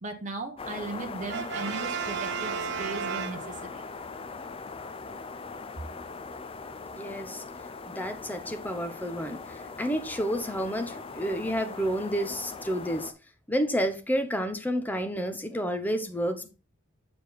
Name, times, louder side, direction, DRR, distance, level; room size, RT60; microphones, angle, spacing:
voice 1, 0.0-3.8, right 3 dB, 35° right, 1.0 m, -37 dB
sound 1, 0.6-13.1, left 4 dB, 25° left, 0.5 m, -40 dB
Brass instrument, 1.3-3.9, right 7 dB, 55° right, 0.6 m, -34 dB
voice 2, 7.0-7.4 7.8-9.4 9.8-13.1 13.5-16.5, equal, 10° left, 0.8 m, -30 dB
6.7 x 4.7 x 4.0 m
head